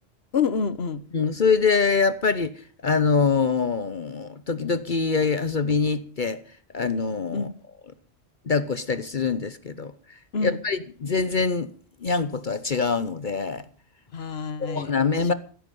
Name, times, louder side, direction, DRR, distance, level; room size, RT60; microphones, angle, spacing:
voice 1, 0.3-1.0 7.3-7.5 10.3-10.6 14.1-15.3, left 5 dB, 70° left, 1.4 m, -27 dB
voice 2, 1.1-2.5 2.8-6.4 6.7-7.5 8.5-9.9 10.4-11.7 12.0-13.6 14.6-15.3, left 5 dB, 50° left, 1.0 m, -24 dB
16.5 x 14.0 x 5.4 m
omnidirectional pair, 1.1 m